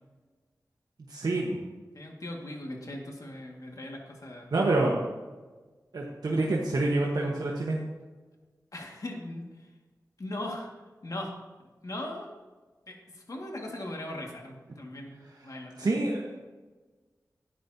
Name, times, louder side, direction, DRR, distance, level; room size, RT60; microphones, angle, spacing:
voice 1, 1.1-1.6 4.5-5.0 5.9-7.8 15.8-16.3, right 2 dB, 80° right, -2 dB, 1.2 m, -27 dB
voice 2, 1.9-4.5 8.7-9.7 10.2-10.7 11.0-11.3 11.8-12.3 12.9-15.9, left 1 dB, 60° left, 0 dB, 2.0 m, -39 dB
11.5 x 9.5 x 2.8 m, 1.3 s
wide cardioid pair, 60°, 7 cm